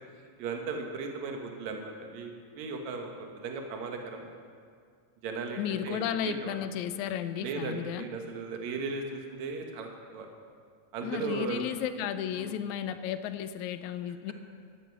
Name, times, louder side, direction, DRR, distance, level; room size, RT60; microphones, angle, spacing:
voice 1, 0.4-4.3 5.2-6.6 7.4-10.3 10.9-11.7 12.3-12.5, right 4 dB, 70° right, 3 dB, 2.5 m, -37 dB
voice 2, 5.6-8.1 11.0-14.3, left 9 dB, 80° left, 11 dB, 2.0 m, -33 dB
14.5 x 11.5 x 6.0 m, 2.1 s
omnidirectional pair, 3.4 m